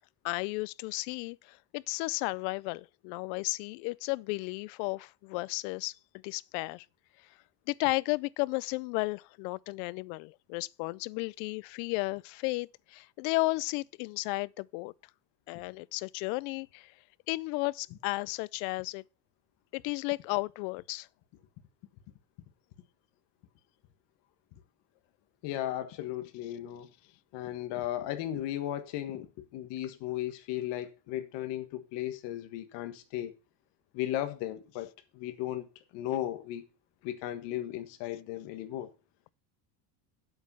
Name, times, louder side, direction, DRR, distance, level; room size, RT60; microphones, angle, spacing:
voice 1, 0.2-5.9 6.2-6.9 7.7-14.9 15.5-16.9 17.3-19.0 19.7-21.1, left 24 dB, 85° left, 0.6 m, -33 dB
voice 2, 25.4-26.9 27.3-33.3 33.9-35.7 35.9-36.6 37.0-38.9, left 13 dB, 55° left, 1.5 m, -36 dB
8.3 x 8.0 x 5.5 m
cardioid pair, 175°, 50 cm